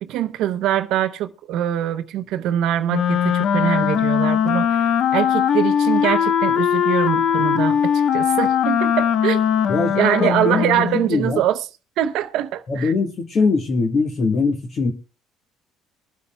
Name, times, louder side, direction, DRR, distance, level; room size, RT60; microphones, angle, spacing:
voice 1, 0.0-9.4 9.9-11.6 12.0-12.9, right 11 dB, 70° right, 0.7 m, -23 dB
Wind instrument woodwind instrument, 2.9-11.1, left 8 dB, 55° left, 0.8 m, -20 dB
voice 2, 9.7-10.6 11.1-11.4 12.7-14.9, left 4 dB, 35° left, 1.3 m, -21 dB
23.5 x 8.1 x 2.2 m
cardioid pair, 130°, 0 cm